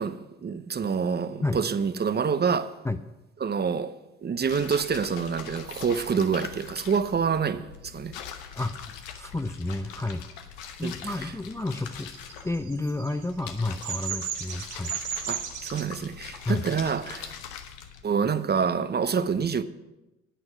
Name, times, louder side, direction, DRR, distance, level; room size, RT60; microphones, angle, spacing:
voice 1, 0.0-2.7 3.4-8.2 10.8-10.9 11.2-11.3 15.3-17.3 18.0-19.6, right 6 dB, 30° right, 0.8 m, -27 dB
sound 1, 4.5-18.0, left 8 dB, 80° left, 1.0 m, -42 dB
voice 2, 8.6-10.3 10.8-12.1 12.4-15.0 16.5-16.6, left 2 dB, 10° left, 0.5 m, -31 dB
Bird vocalization bird call bird song, 12.1-15.8, right 8 dB, 70° right, 1.7 m, -34 dB
10.0 x 9.0 x 6.1 m
hypercardioid pair, 60°, 33 cm